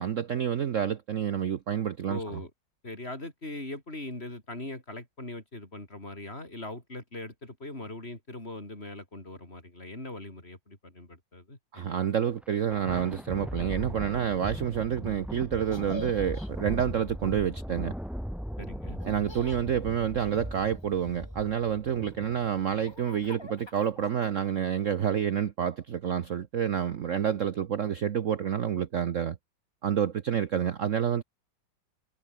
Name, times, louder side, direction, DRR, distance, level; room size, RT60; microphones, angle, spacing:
voice 1, 0.0-2.2 11.7-17.9 19.0-29.4 29.8-31.2, right 8 dB, 50° right, 1.1 m, -28 dB
voice 2, 2.1-2.5 2.8-12.0 18.6-19.0, left 2 dB, 30° left, 5.3 m, -41 dB
Thunder, 12.4-23.0, equal, ahead, 2.6 m, -39 dB
Laughter, 15.7-16.5 19.0-19.6 20.2-21.5 22.0-24.6, left 2 dB, 15° left, 1.4 m, -47 dB
omnidirectional pair, 2.0 m